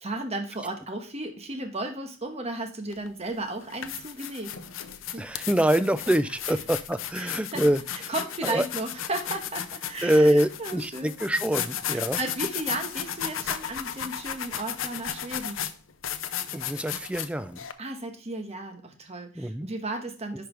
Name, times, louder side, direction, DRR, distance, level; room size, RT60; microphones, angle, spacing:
voice 1, 0.0-4.5 5.1-5.3 6.5-6.6 7.1-7.6 8.1-11.2 11.9-15.6 17.8-20.5, right 2 dB, 30° right, 5 dB, 1.4 m, -34 dB
sound 1, 2.9-3.1 3.6-17.7, left 9 dB, 70° left, 0.7 m, -34 dB
voice 2, 5.2-7.8 8.4-8.7 10.0-12.2 16.5-17.6 19.4-19.7, right 1 dB, 5° right, 13 dB, 0.4 m, -25 dB
10.5 x 5.1 x 3.3 m, 0.36 s
head